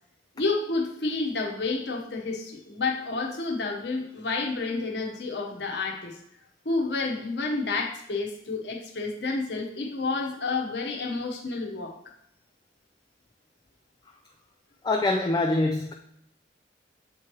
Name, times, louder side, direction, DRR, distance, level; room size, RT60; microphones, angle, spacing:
voice 1, 0.3-6.2 6.6-12.0, left 3 dB, 65° left, 1.1 m, -30 dB
voice 2, 14.8-15.9, left 2 dB, 20° left, 0.4 m, -24 dB
7.1 x 3.1 x 4.6 m
head